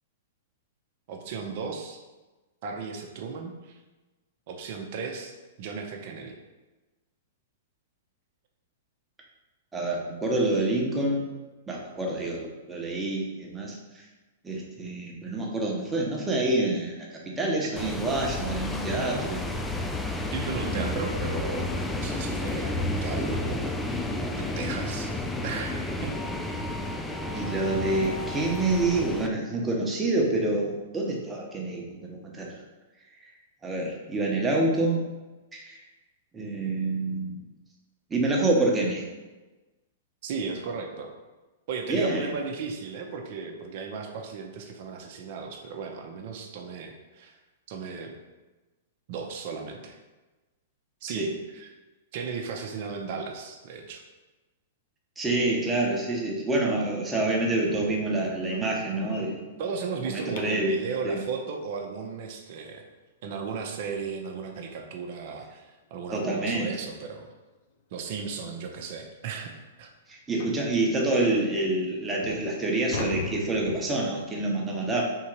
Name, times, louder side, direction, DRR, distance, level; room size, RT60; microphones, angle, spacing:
voice 1, 1.1-2.0 2.6-3.8 4.5-5.3 5.6-6.4 20.3-23.8 24.4-25.1 25.4-26.2 40.2-41.1 41.7-47.4 47.7-48.1 49.1-50.0 51.0-51.7 52.1-54.0 59.6-62.8 63.2-67.3 67.9-69.5 69.8-69.9, right 5 dB, 55° right, 2 dB, 0.7 m, -35 dB
voice 2, 9.7-11.3 11.7-14.0 14.4-19.4 20.6-21.0 27.3-32.5 33.6-35.0 35.5-35.8 36.3-37.4 38.1-39.1 41.9-42.3 51.0-51.3 55.2-59.4 60.0-60.8 61.0-61.2 66.1-66.8 70.1-75.0, right 2 dB, 15° right, -2 dB, 0.9 m, -27 dB
sound 1, 17.8-29.3, left 2 dB, 5° left, 0.4 m, -31 dB
sound 2, 57.7-60.8 63.6-63.7 64.2-64.4 64.7-64.8 65.3-65.4 66.5-66.6 67.0-67.2 67.8-67.9 68.3-68.4 68.9-69.0 70.4-70.7 71.4-71.5 72.0-74.3, left 4 dB, 55° left, 0.6 m, -40 dB
3.7 x 2.8 x 4.5 m, 1.2 s
hypercardioid pair, 120°, 0 cm